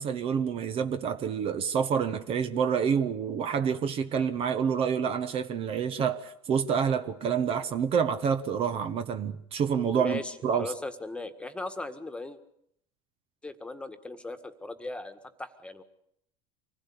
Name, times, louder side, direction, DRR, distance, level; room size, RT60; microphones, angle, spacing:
voice 1, 0.0-10.7, right 7 dB, 45° right, 1.3 m, -28 dB
voice 2, 9.9-12.4 13.4-15.8, left 2 dB, 10° left, 1.8 m, -38 dB
25.0 x 16.5 x 8.6 m
supercardioid pair, 100°, 14 cm